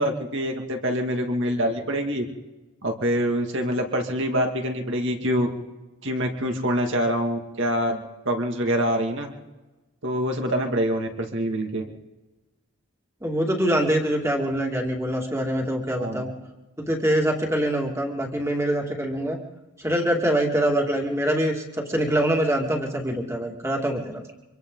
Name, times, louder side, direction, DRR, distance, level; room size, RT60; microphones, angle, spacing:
voice 1, 0.0-2.2 2.8-5.5 6.0-9.3 10.0-11.8 16.0-16.3, equal, 55° right, 3 dB, 2.4 m, -25 dB
voice 2, 13.2-16.3 16.8-19.4 19.8-24.2, right 1 dB, 10° right, 0 dB, 2.4 m, -24 dB
25.5 x 25.5 x 4.0 m, 1.1 s
head